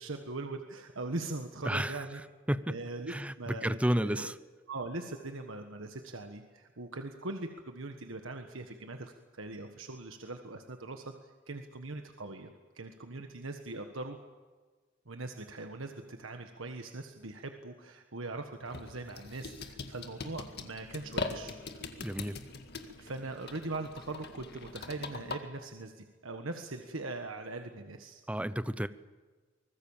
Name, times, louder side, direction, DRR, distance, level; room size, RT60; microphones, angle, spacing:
voice 1, 0.0-2.2 2.7-4.3 4.7-12.5 12.7-14.2 15.1-21.6 23.0-28.2, right 2 dB, 80° right, 5 dB, 1.5 m, -41 dB
voice 2, 1.6-2.0 2.5-2.8 3.1-4.4 22.0-22.4 28.3-28.9, equal, 5° right, 14 dB, 0.7 m, -31 dB
sound 1, 18.6-25.4, left 3 dB, 55° left, 2.0 m, -42 dB
25.0 x 20.5 x 7.4 m, 1.3 s
head